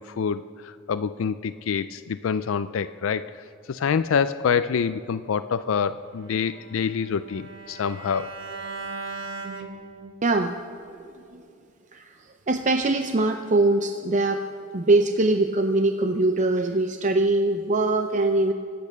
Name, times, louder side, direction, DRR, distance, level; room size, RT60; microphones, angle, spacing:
voice 1, 0.0-3.3 3.7-8.3, left 6 dB, 80° left, 12 dB, 0.4 m, -26 dB
Bowed string instrument, 6.2-10.4, right 3 dB, 65° right, 1.4 m, -38 dB
voice 2, 10.2-10.5 11.3-11.4 11.9-12.1 12.5-14.4 14.7-18.5, right 2 dB, 40° right, 6 dB, 0.6 m, -22 dB
24.5 x 8.5 x 6.7 m, 2.5 s
head